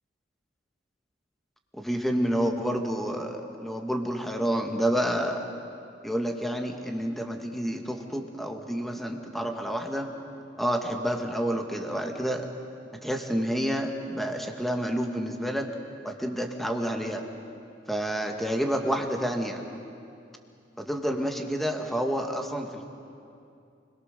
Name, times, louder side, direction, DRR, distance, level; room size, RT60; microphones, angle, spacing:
voice 1, 1.7-5.5 6.0-10.1 10.6-12.5 13.0-15.7 16.0-17.3 17.9-19.6 20.8-22.9, equal, ahead, 3 dB, 1.8 m, -29 dB
29.5 x 21.5 x 6.7 m, 2.5 s
head